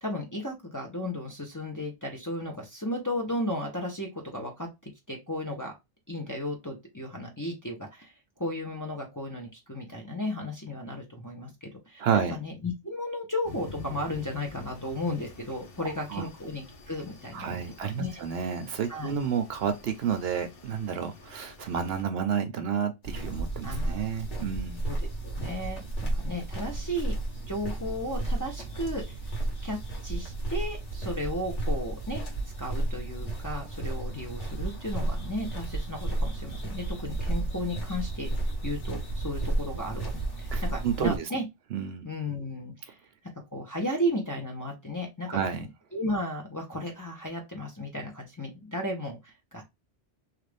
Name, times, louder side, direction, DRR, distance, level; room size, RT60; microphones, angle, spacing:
voice 1, 0.0-5.7 6.1-8.1 8.4-18.2 18.9-19.1 23.6-24.1 24.9-25.0 25.2-27.1 27.5-29.2 29.6-32.2 32.6-38.3 38.6-40.1 40.4-41.4 42.0-43.0 43.5-45.4 45.9-49.7, left 1 dB, 20° left, 0.6 m, -34 dB
voice 2, 12.0-12.4 15.8-16.3 17.3-24.8 40.5-41.3 41.7-42.1 45.3-45.6, right 7 dB, 65° right, 0.7 m, -30 dB
sound 1, 13.4-22.0, left 3 dB, 55° left, 1.0 m, -47 dB
sound 2, 23.0-41.2, right 2 dB, 80° left, 1.7 m, -32 dB
3.1 x 2.4 x 3.3 m
omnidirectional pair, 1.2 m